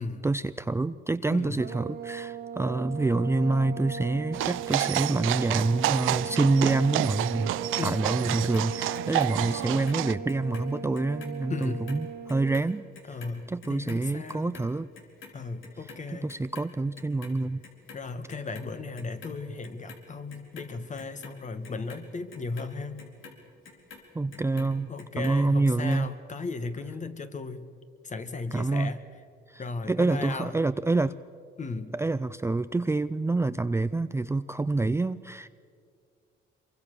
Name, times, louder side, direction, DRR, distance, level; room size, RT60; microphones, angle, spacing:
voice 1, 0.2-7.5 7.8-12.8 13.5-14.9 16.2-17.6 24.1-24.9 25.2-26.1 28.5-28.9 29.5-31.1 31.9-35.5, right 3 dB, 15° right, 13 dB, 0.5 m, -27 dB
voice 2, 1.3-1.7 7.8-8.1 11.5-11.9 13.1-14.6 15.3-16.3 17.9-23.1 24.9-27.7 28.0-29.0 29.6-30.5 31.6-31.9, left 4 dB, 40° left, 9 dB, 1.8 m, -36 dB
sound 1, 1.6-12.6, right 4 dB, 50° right, 1.0 m, -38 dB
sound 2, 4.3-10.1, right 15 dB, 90° right, 0.6 m, -30 dB
Clock, 8.3-10.7 10.9-17.4 17.6-18.7 19.0-20.0 20.3-24.7 25.0-26.0 26.3-26.4, left 5 dB, 80° left, 4.2 m, -48 dB
25.5 x 23.5 x 6.8 m, 2.3 s
cardioid pair, 90°, 20 cm